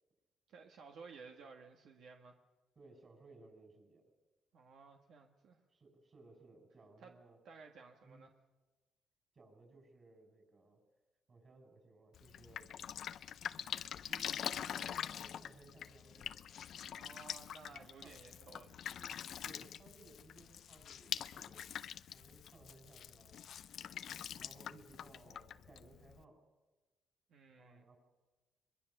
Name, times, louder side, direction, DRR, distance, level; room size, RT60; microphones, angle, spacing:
voice 1, 0.5-2.4 4.5-5.6 7.0-7.1 7.5-8.3 16.8-18.9 27.3-27.9, right 4 dB, 75° right, 2 dB, 1.7 m, -56 dB
voice 2, 2.7-4.1 5.7-7.4 8.0-8.3 9.3-10.8 11.3-12.7 14.1-16.3 17.7-18.1 19.4-21.8 22.1-23.4 24.3-26.4 27.6-28.0, right 2 dB, 40° right, 3 dB, 6.7 m, -61 dB
Drip, 12.1-26.2, left 9 dB, 65° left, 0.6 m, -45 dB
23.0 x 21.5 x 6.7 m, 1.2 s
cardioid pair, 90°, 0 cm